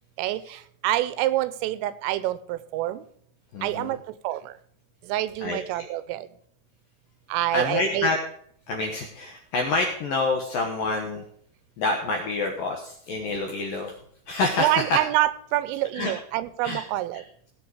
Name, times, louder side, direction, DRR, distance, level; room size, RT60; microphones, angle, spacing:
voice 1, 0.2-3.0 3.6-4.0 4.2-4.5 5.0-6.3 7.3-8.1 14.6-17.2, right 15 dB, 85° right, 15 dB, 3.3 m, -26 dB
voice 2, 3.5-4.0 5.4-5.9 7.5-8.2 8.7-11.2 11.8-13.9 14.3-15.0 15.9-16.1 16.6-16.8, left 3 dB, 70° left, 2 dB, 2.2 m, -27 dB
18.0 x 7.5 x 4.8 m, 0.63 s
omnidirectional pair, 5.8 m